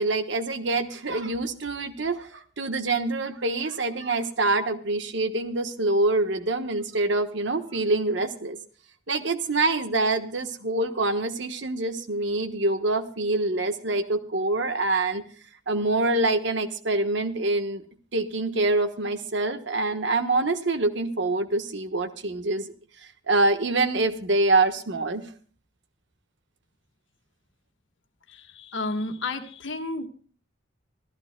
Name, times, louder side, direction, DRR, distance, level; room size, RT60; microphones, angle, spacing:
voice 1, 0.0-8.6 9.1-15.2 15.7-17.8 18.1-22.7 23.3-25.2, right 2 dB, 65° right, 8 dB, 1.2 m, -25 dB
voice 2, 28.3-30.1, left 2 dB, 75° left, 6 dB, 1.6 m, -32 dB
25.5 x 13.5 x 2.2 m, 0.43 s
head